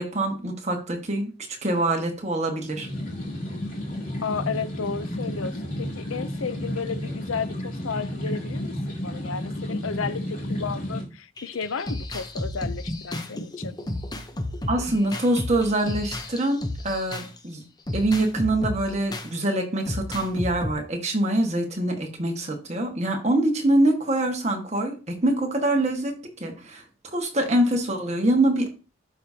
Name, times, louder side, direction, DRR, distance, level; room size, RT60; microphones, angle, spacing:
voice 1, 0.0-1.3 1.6-2.9 14.7-17.6 17.9-28.7, right 1 dB, 35° right, 1.5 m, -24 dB
sound 1, 2.7-11.0, left 1 dB, 40° left, 3.2 m, -32 dB
voice 2, 4.2-8.7 9.0-13.8, left 5 dB, 90° left, 0.6 m, -33 dB
sound 2, 11.4-17.4 17.9-19.3 19.9-20.7, left 1 dB, 20° left, 0.7 m, -32 dB
11.5 x 5.0 x 2.8 m
head